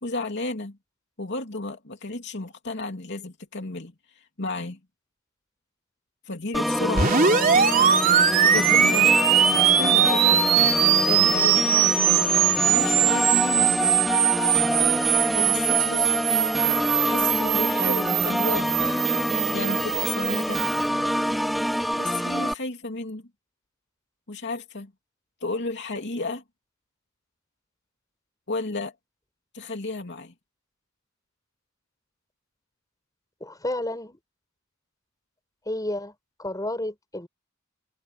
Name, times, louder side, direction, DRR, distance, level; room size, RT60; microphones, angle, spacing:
voice 1, 0.0-0.8 1.2-3.9 4.4-4.8 6.3-7.1 8.4-9.1 9.6-10.5 11.1-11.9 12.6-13.7 15.3-16.1 17.0-18.9 19.5-20.6 21.9-23.2 24.3-24.9 25.4-26.4 28.5-28.9 29.5-30.3, left 3 dB, 55° left, 2.9 m, -32 dB
Organ, 6.5-22.5, equal, ahead, 1.9 m, -26 dB
sound 1, 6.9-20.8, right 8 dB, 40° right, 3.3 m, -21 dB
voice 2, 33.4-34.2 35.7-36.1 36.4-37.3, left 1 dB, 15° left, 5.9 m, -31 dB
head